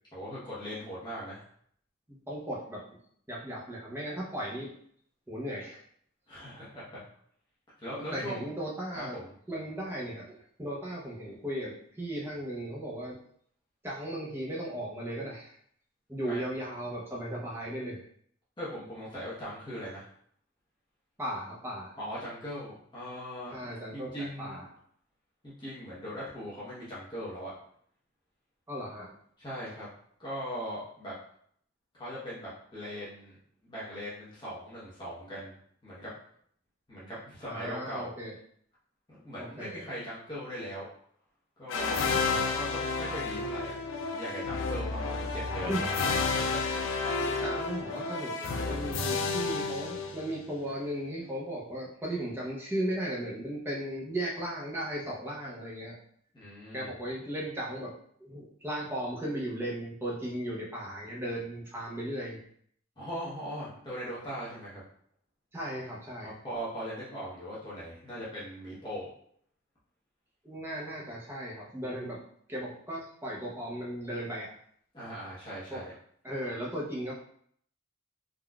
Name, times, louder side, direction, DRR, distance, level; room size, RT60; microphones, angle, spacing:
voice 1, 0.1-1.4 6.3-7.0 7.8-8.4 9.0-9.3 16.2-16.4 18.6-20.1 22.0-24.6 25.4-27.5 29.4-29.9 30.2-31.1 31.9-33.4 33.6-35.6 35.8-36.1 36.9-38.1 39.1-40.9 41.6-42.0 42.5-45.7 46.2-46.6 56.3-56.9 63.0-64.8 66.2-69.1 74.9-75.9, equal, 20° left, -9 dB, 0.9 m, -40 dB
voice 2, 2.3-2.8 3.3-4.7 5.3-5.8 8.1-9.2 9.5-13.2 13.8-15.6 16.1-18.0 21.2-21.9 23.5-24.7 28.7-29.2 37.5-38.4 39.4-39.9 42.3-42.4 45.7-45.8 47.2-56.0 56.7-57.9 58.2-62.4 65.5-66.3 70.4-72.2 72.5-74.5 75.7-75.8 76.2-77.2, right 1 dB, 10° right, -5 dB, 0.6 m, -36 dB
sound 1, 41.7-50.6, left 4 dB, 80° left, 0.4 m, -31 dB
3.7 x 2.4 x 2.2 m, 0.64 s
head